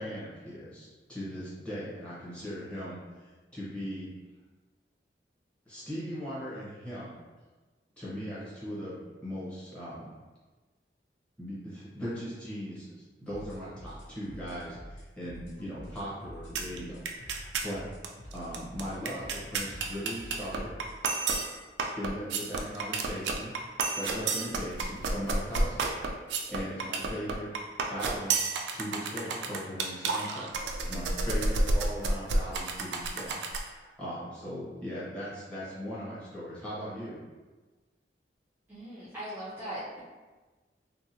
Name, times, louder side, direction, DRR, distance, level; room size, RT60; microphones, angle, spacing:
voice 1, 0.0-3.0 3.5-4.1 5.7-7.2 8.0-10.1 11.4-12.9 13.2-17.8 18.3-20.7 22.0-23.5 23.9-25.9 26.5-27.5 27.9-28.4 28.7-30.5 30.8-37.2, equal, 5° left, -9 dB, 0.8 m, -39 dB
sound 1, 13.3-21.0, equal, 75° left, 0.6 m, -47 dB
sound 2, 16.6-16.8 17.1-17.7 18.0-18.1 18.3-33.7, right 3 dB, 75° right, 0.3 m, -31 dB
voice 2, 38.7-40.0, right 1 dB, 10° right, -12 dB, 0.4 m, -39 dB
2.8 x 2.2 x 2.6 m, 1.3 s
head